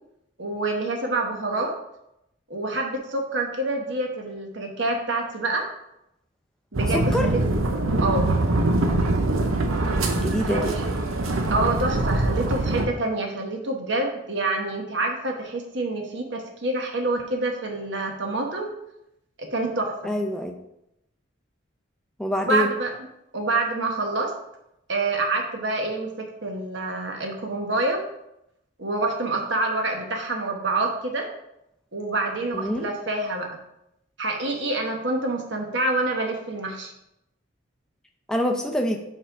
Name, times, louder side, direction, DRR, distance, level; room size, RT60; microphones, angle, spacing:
voice 1, 0.4-1.7 2.5-5.6 6.7-7.4 8.0-8.3 10.4-10.8 11.5-18.7 19.4-20.1 22.4-22.9 23.3-24.3 24.9-28.0 28.8-31.3 31.9-33.5 34.2-36.9, right 2 dB, 60° right, 2 dB, 1.1 m, -27 dB
sound 1, 6.7-12.9, right 2 dB, 90° right, 0.8 m, -23 dB
voice 2, 6.9-7.3 10.2-10.7 20.0-20.5 22.2-22.7 32.5-32.9 38.3-39.0, equal, 5° left, 2 dB, 0.6 m, -25 dB
6.4 x 3.8 x 5.6 m, 0.83 s
head